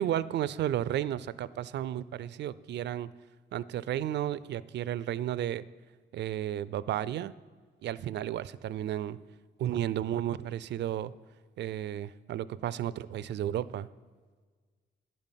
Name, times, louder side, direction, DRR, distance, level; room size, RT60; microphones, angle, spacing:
voice 1, 0.0-3.1 3.5-5.6 6.1-7.3 7.8-9.2 9.6-11.1 11.6-13.9, right 11 dB, 60° right, 17 dB, 0.4 m, -33 dB
10.5 x 5.4 x 7.3 m, 1.5 s
cardioid pair, 90°, 20 cm